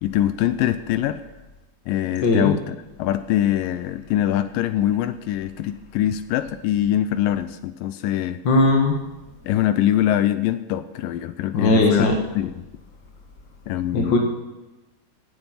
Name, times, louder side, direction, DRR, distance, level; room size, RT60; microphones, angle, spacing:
voice 1, 0.0-1.2 1.9-8.4 9.4-12.1 12.4-12.5 13.7-14.2, left 12 dB, 85° left, 11 dB, 2.0 m, -23 dB
voice 2, 2.2-2.5 8.4-9.0 11.5-12.1 13.9-14.2, left 2 dB, 60° left, 1 dB, 1.2 m, -18 dB
16.5 x 8.8 x 5.7 m, 1.1 s
omnidirectional pair, 4.6 m